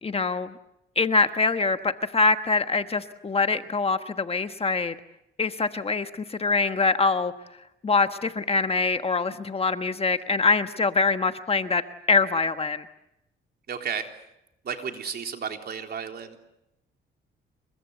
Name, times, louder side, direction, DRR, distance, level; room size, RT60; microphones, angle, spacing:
voice 1, 0.0-0.5 1.0-4.9 5.4-7.3 7.8-11.8 12.1-12.8, left 4 dB, 30° left, 9 dB, 1.3 m, -24 dB
voice 2, 13.7-14.1 14.6-16.5, right 7 dB, 55° right, 4 dB, 3.7 m, -33 dB
28.0 x 23.0 x 8.2 m, 0.85 s
cardioid pair, 90°, 20 cm